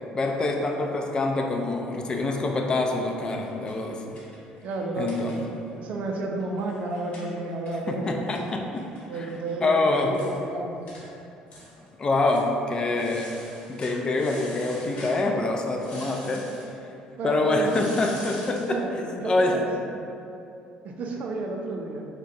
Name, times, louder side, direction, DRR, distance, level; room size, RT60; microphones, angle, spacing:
voice 1, 0.1-4.2 5.0-5.4 7.9-8.8 9.1-9.3 9.6-10.1 12.0-13.3 13.7-16.5 17.2-18.8 19.2-19.6, left 2 dB, 30° left, 2 dB, 0.3 m, -25 dB
sound 1, 3.1-5.7 6.0-6.1 6.4-9.5 9.8-9.9 10.1-10.4 10.9-11.0 11.5-11.9 12.2-12.5 12.9-15.2 15.8-16.7 17.6-18.7, left 1 dB, 55° left, 1.0 m, -45 dB
voice 2, 4.6-5.3 5.7-8.3 9.1-10.8 17.2-17.8 18.7-19.9 20.8-22.1, right 2 dB, 60° right, 1 dB, 0.4 m, -31 dB
2.6 x 2.2 x 3.8 m, 2.8 s
supercardioid pair, 90°, 3 cm